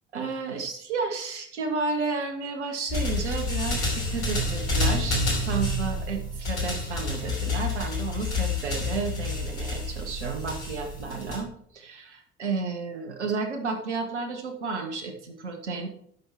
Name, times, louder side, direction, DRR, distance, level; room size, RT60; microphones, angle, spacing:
voice 1, 0.1-15.9, right 4 dB, 85° right, 5 dB, 1.2 m, -32 dB
sound 1, 2.9-11.4, left 2 dB, 80° left, 3.0 m, -29 dB
11.5 x 6.3 x 4.4 m, 0.67 s
figure-of-eight pair, 45°, 34 cm